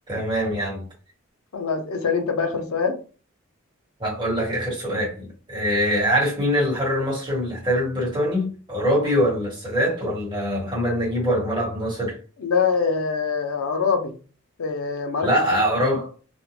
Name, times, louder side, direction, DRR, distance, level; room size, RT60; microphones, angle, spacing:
voice 1, 0.1-0.9 4.0-12.2 15.2-16.1, equal, 20° right, 1.3 m, -23 dB
voice 2, 1.5-3.0 12.4-14.1 14.6-15.3, left 5 dB, 90° left, 0.6 m, -24 dB
2.5 x 2.1 x 2.9 m
head